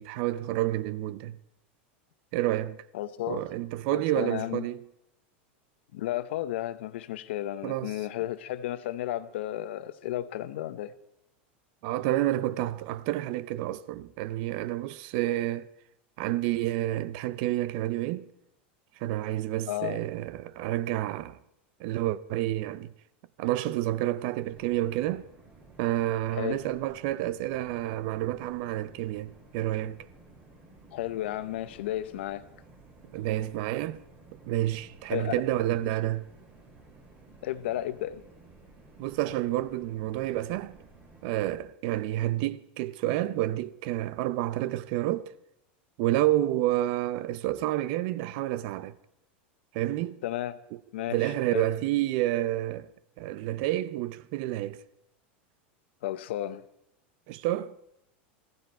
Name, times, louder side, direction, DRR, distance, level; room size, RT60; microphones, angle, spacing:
voice 1, 0.0-1.4 2.3-2.8 3.3-4.8 7.6-7.9 11.8-15.7 16.2-18.3 19.0-21.4 21.8-22.9 23.4-25.2 25.8-30.0 33.1-34.0 34.5-36.2 39.0-40.8 41.2-45.3 46.0-49.0 49.7-50.2 50.7-50.8 51.1-52.9 53.2-54.8 57.3-57.7, right 15 dB, 55° right, 0.6 m, -29 dB
voice 2, 2.9-3.5 3.9-4.7 5.9-10.9 19.7-20.0 26.3-26.6 30.9-32.4 35.1-35.4 37.4-38.2 50.2-50.6 50.9-51.7 56.0-56.6, left 13 dB, 80° left, 0.9 m, -33 dB
sound 1, 24.4-41.6, right 3 dB, 25° right, 3.6 m, -54 dB
15.5 x 15.0 x 4.5 m
supercardioid pair, 145°, 6 cm